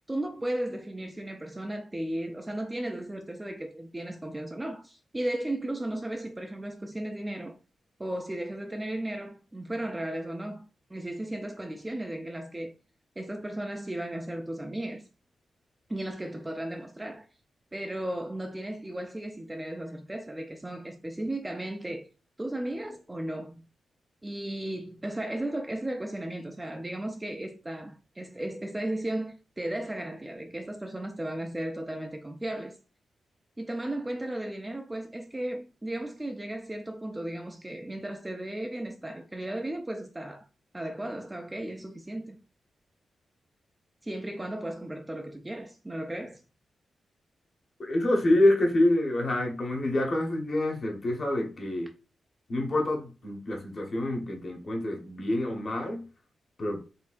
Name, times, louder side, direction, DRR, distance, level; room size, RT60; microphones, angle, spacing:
voice 1, 0.0-7.6 8.0-10.6 10.9-12.7 13.2-15.0 15.9-17.3 17.7-22.1 22.4-23.6 24.2-32.8 33.6-40.4 40.7-42.4 44.0-46.4, right 1 dB, 10° right, 0.4 m, -35 dB
voice 2, 47.8-51.9 52.5-56.0 56.6-56.8, left 1 dB, 35° left, 1.1 m, -27 dB
4.3 x 3.9 x 2.5 m
wide cardioid pair, 170°, 0 cm